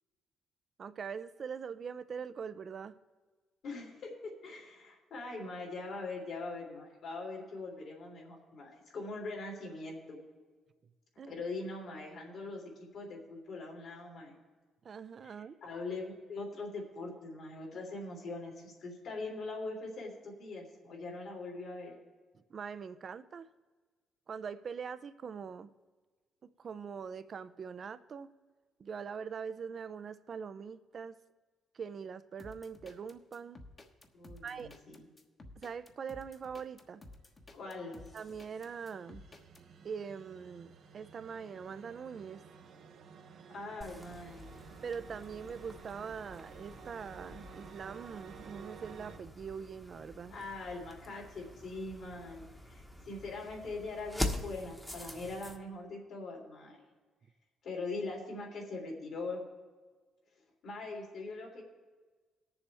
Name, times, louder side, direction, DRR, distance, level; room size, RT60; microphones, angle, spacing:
voice 1, 0.8-3.0 11.2-11.3 14.8-15.6 22.3-23.5 24.3-25.7 26.4-28.3 28.8-31.2 31.7-33.6 34.4-34.7 35.6-37.0 38.1-39.2 39.8-42.4 44.8-50.3 52.3-52.4, right 6 dB, 50° right, 13 dB, 0.5 m, -43 dB
voice 2, 3.6-10.2 11.3-14.4 15.2-15.3 15.6-21.9 34.1-35.0 37.5-38.0 43.5-44.5 50.3-56.8 57.6-59.4 60.6-61.6, left 3 dB, 70° left, -1 dB, 3.3 m, -42 dB
sound 1, 32.4-39.6, left 2 dB, 35° left, 1.2 m, -54 dB
sound 2, 37.6-49.2, right 6 dB, 70° right, 0.9 m, -54 dB
sound 3, 43.8-55.6, left 1 dB, 10° left, 1.1 m, -44 dB
19.5 x 7.0 x 3.4 m, 1.4 s
cardioid pair, 90°, 0 cm